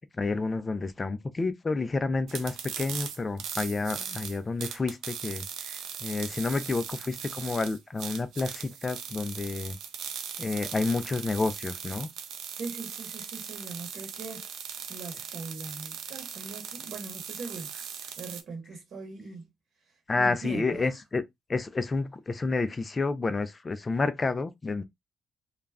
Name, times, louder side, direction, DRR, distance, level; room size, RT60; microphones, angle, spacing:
voice 1, 0.2-9.8 10.4-12.1 20.1-21.2 21.5-24.8, left 3 dB, 25° left, 0.3 m, -30 dB
sound 1, 2.3-18.4, right 8 dB, 80° right, 0.5 m, -39 dB
voice 2, 12.5-14.6 14.9-19.5 19.9-21.0, right 3 dB, 60° right, 1.0 m, -41 dB
2.3 x 2.0 x 3.4 m
cardioid pair, 125°, 0 cm